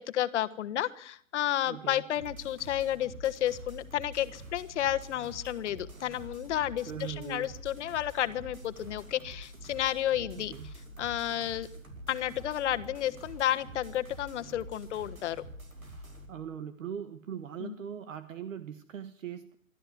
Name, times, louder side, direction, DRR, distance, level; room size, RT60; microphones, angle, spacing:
voice 1, 0.0-10.5 11.0-11.7 12.1-15.4 17.6-17.7, left 12 dB, 55° left, 12 dB, 1.4 m, -31 dB
voice 2, 1.6-2.0 6.9-7.5 10.3-10.7 16.3-19.6, right 9 dB, 70° right, 11 dB, 1.6 m, -40 dB
sound 1, 2.1-16.3, right 1 dB, 90° right, 5.3 m, -47 dB
25.0 x 13.0 x 9.3 m, 0.63 s
hypercardioid pair, 125°, 41 cm